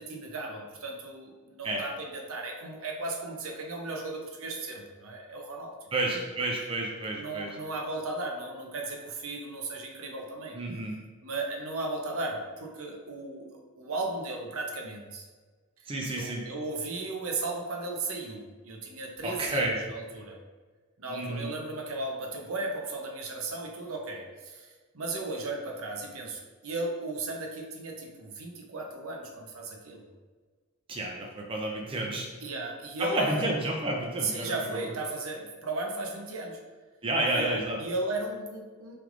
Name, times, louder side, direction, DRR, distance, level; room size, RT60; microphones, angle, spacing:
voice 1, 0.0-6.2 7.2-10.6 11.2-15.3 15.8-20.4 21.0-30.1 32.4-33.5 34.2-36.6 37.3-39.0, right 2 dB, 75° right, 1 dB, 0.8 m, -36 dB
voice 2, 5.9-7.5 10.5-10.9 15.9-16.4 19.2-19.7 21.1-21.5 30.9-32.3 33.0-34.8 37.0-37.8, right 1 dB, 25° right, -1 dB, 0.5 m, -30 dB
6.1 x 3.4 x 2.5 m, 1.4 s
head